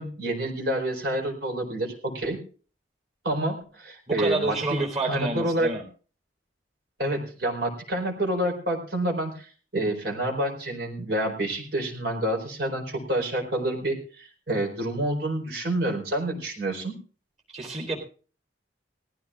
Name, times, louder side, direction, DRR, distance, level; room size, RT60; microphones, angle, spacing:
voice 1, 0.0-2.4 3.2-4.6 5.0-5.7 7.0-16.9, right 1 dB, 60° right, 1 dB, 4.5 m, -28 dB
voice 2, 4.1-5.8 17.5-18.0, right 2 dB, 35° right, -1 dB, 3.6 m, -29 dB
19.5 x 15.0 x 2.5 m, 0.38 s
head